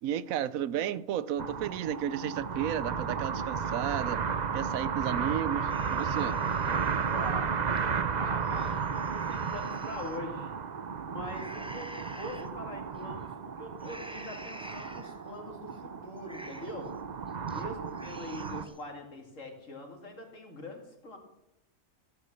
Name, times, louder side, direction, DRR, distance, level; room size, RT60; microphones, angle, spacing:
voice 1, 0.0-4.3 4.5-6.4, right 10 dB, 85° right, 1.1 m, -33 dB
sound 1, 1.4-18.6, right 6 dB, 40° right, 0.7 m, -33 dB
Xenomorph noises two, 5.7-7.3 7.8-7.9 8.4-10.2 11.2-12.5 12.9-13.3 13.8-15.3 15.7-15.8 16.2-16.9 17.3-17.6 17.9-18.8, right 1 dB, 5° right, 0.7 m, -48 dB
voice 2, 7.1-7.5 8.1-10.5 11.0-16.9 17.5-21.2, left 1 dB, 70° left, 3.1 m, -43 dB
15.5 x 8.3 x 6.9 m
omnidirectional pair, 1.4 m